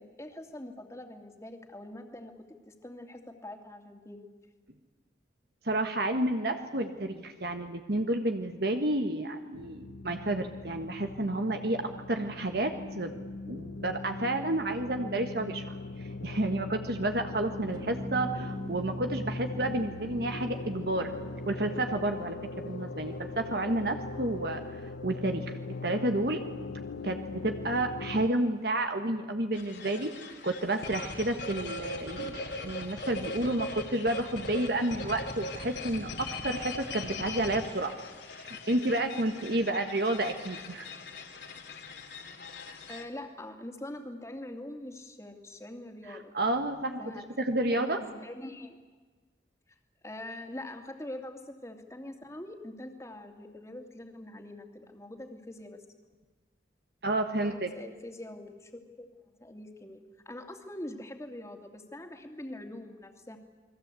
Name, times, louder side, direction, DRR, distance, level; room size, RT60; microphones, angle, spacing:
voice 1, 0.0-2.3 2.7-4.3 40.8-40.9 42.9-46.3 47.0-47.3 47.7-48.8 49.7-49.8 50.0-55.8 57.3-59.1 59.4-63.4, left 1 dB, 15° left, 4 dB, 2.5 m, -44 dB
voice 2, 5.6-21.1 21.5-24.6 25.0-25.6 25.8-26.5 27.0-30.1 30.4-37.9 38.3-40.9 46.1-47.0 47.4-48.0 57.0-57.7, right 1 dB, 60° right, 6 dB, 1.5 m, -30 dB
sound 1, 9.5-28.3, left 3 dB, 90° left, 0.8 m, -41 dB
sound 2, 17.7-28.3, equal, 25° right, 1.8 m, -44 dB
sound 3, 29.5-43.0, left 2 dB, 70° left, 3.0 m, -41 dB
29.5 x 21.5 x 8.4 m, 1.3 s
head